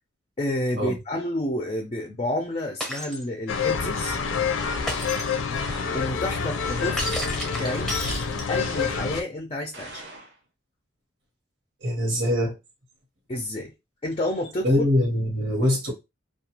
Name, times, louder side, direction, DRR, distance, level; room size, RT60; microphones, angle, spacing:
voice 1, 0.4-4.2 5.9-7.1 7.6-10.0 13.3-13.7 14.0-14.8, left 1 dB, 30° left, 0.4 m, -30 dB
Shatter, 2.8-3.2 4.9-5.4 7.0-8.7, left 1 dB, ahead, 0.7 m, -32 dB
sound 1, 3.5-9.2, left 5 dB, 90° left, 0.4 m, -27 dB
sound 2, 4.6-5.2 5.6-6.2 6.6-7.2 7.6-8.1 8.6-9.2 9.7-10.4, right 2 dB, 55° right, 0.7 m, -42 dB
voice 2, 11.8-12.5 14.6-15.9, left 1 dB, 85° right, 1.1 m, -23 dB
2.4 x 2.2 x 2.8 m
head